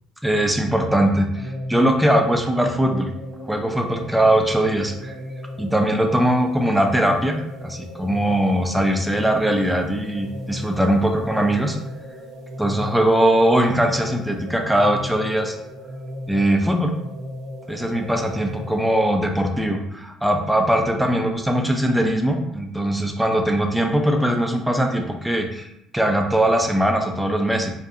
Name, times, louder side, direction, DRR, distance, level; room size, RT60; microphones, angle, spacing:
voice 1, 0.2-3.1 3.4-5.2 5.6-11.8 12.6-15.6 16.3-16.9 17.7-27.7, right 1 dB, 5° right, 3 dB, 0.4 m, -20 dB
sound 1, 1.3-18.9, left 1 dB, 80° right, 0.8 m, -36 dB
2.6 x 2.1 x 2.5 m, 0.78 s
supercardioid pair, 80°, 0 cm